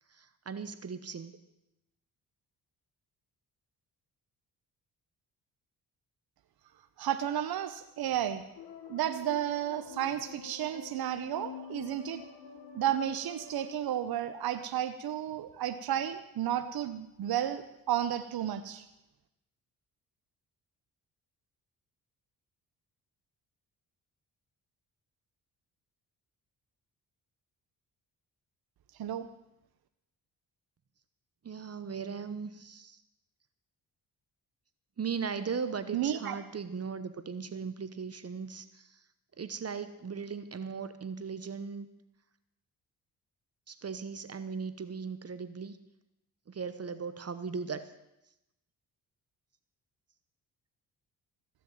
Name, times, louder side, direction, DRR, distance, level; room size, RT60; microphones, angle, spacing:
voice 1, 0.1-1.4 31.4-33.0 35.0-39.1 39.3-41.9 43.7-45.8 46.5-47.9, right 5 dB, 40° right, 12 dB, 1.0 m, -38 dB
voice 2, 7.0-8.4 8.9-12.2 12.7-18.8 29.0-29.3 35.9-36.3, right 11 dB, 70° right, 9 dB, 1.0 m, -32 dB
sound 1, 8.6-13.8, left 8 dB, 80° left, 1.6 m, -47 dB
15.0 x 6.9 x 9.2 m, 0.89 s
cardioid pair, 65°, 39 cm